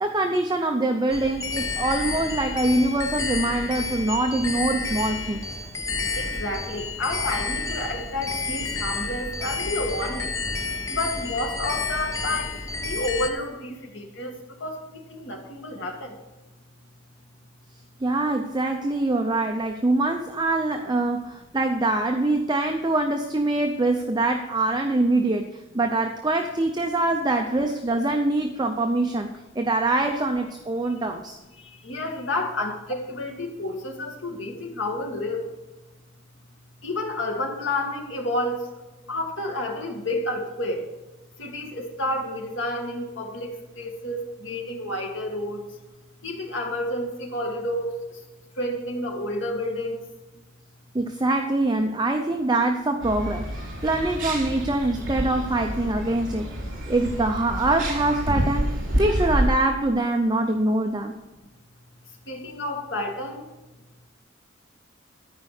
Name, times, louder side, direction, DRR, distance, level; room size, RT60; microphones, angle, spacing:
voice 1, 0.0-5.4 18.0-31.4 50.9-56.5 56.9-61.1, right 2 dB, 20° right, 4 dB, 0.6 m, -24 dB
sound 1, 1.1-13.3, left 3 dB, 15° left, 0.9 m, -30 dB
voice 2, 6.2-10.3 10.9-14.3 14.6-16.1 20.8-20.9 31.8-35.5 36.8-38.6 39.1-40.8 41.4-45.6 46.2-48.0 48.6-50.0 62.3-63.4, left 1 dB, 65° left, 1 dB, 2.1 m, -30 dB
sound 2, 53.0-59.5, right 1 dB, 70° right, 3.6 m, -28 dB
13.5 x 5.1 x 6.6 m, 1.1 s
head